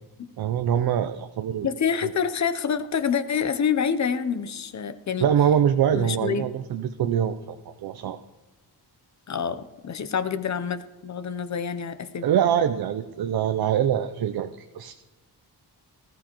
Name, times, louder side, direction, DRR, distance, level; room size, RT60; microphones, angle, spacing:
voice 1, 0.4-1.7 5.2-7.6 7.8-8.2 12.2-14.5 14.8-14.9, right 9 dB, 65° right, 9 dB, 0.5 m, -23 dB
voice 2, 1.6-5.3 5.9-6.5 9.3-12.3, left 7 dB, 45° left, 12 dB, 0.7 m, -27 dB
19.0 x 14.5 x 3.0 m, 1.1 s
wide cardioid pair, 135°, 40 cm